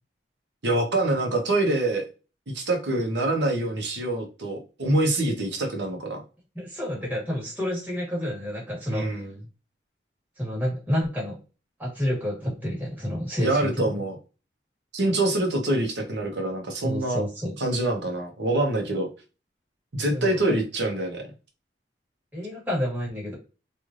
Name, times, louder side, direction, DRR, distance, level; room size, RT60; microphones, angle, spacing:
voice 1, 0.6-2.0 2.5-6.2 8.9-9.4 13.4-14.2 14.9-17.2 17.6-19.1 19.9-21.3, right 2 dB, 90° right, 3 dB, 0.9 m, -25 dB
voice 2, 6.5-9.2 10.4-11.4 11.8-14.0 16.8-17.5 20.1-20.4 22.3-23.3, equal, 10° right, -5 dB, 1.3 m, -29 dB
3.1 x 2.6 x 2.5 m, 0.32 s
head